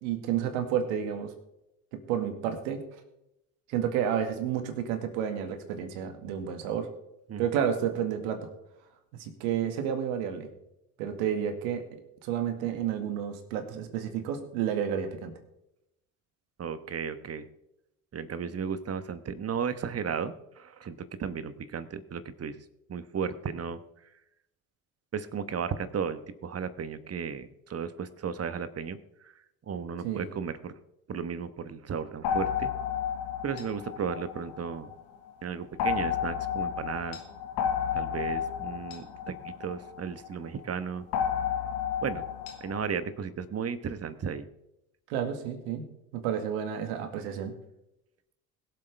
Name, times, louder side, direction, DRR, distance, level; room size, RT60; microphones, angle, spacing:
voice 1, 0.0-1.3 1.9-2.8 3.7-6.9 7.4-8.5 9.2-10.5 11.0-11.8 12.2-15.3 30.0-30.3 45.1-45.8 46.1-47.5, right 9 dB, 75° right, 6 dB, 2.0 m, -30 dB
voice 2, 16.6-17.5 18.1-22.6 22.9-23.8 25.1-29.0 29.2-29.3 29.7-30.8 31.1-32.7 33.4-34.9 35.4-37.2 37.9-41.0 42.0-42.2 42.6-44.5, right 6 dB, 35° right, 12 dB, 1.2 m, -34 dB
sound 1, 32.2-35.0 35.8-40.3 41.1-42.9, left 8 dB, 70° left, 1.9 m, -32 dB
21.5 x 7.9 x 3.5 m, 0.87 s
hypercardioid pair, 60°, 42 cm